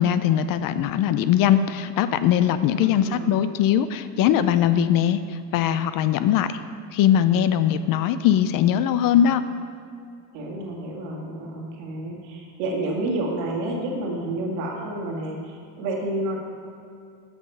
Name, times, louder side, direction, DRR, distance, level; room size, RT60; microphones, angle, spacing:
voice 1, 0.0-5.2 5.5-6.6 6.9-9.4, left 10 dB, 45° left, 12 dB, 0.4 m, -20 dB
voice 2, 2.6-3.4 10.3-16.4, right 1 dB, 90° right, -1 dB, 2.0 m, -30 dB
8.0 x 6.4 x 5.6 m, 2.4 s
supercardioid pair, 110°, 48 cm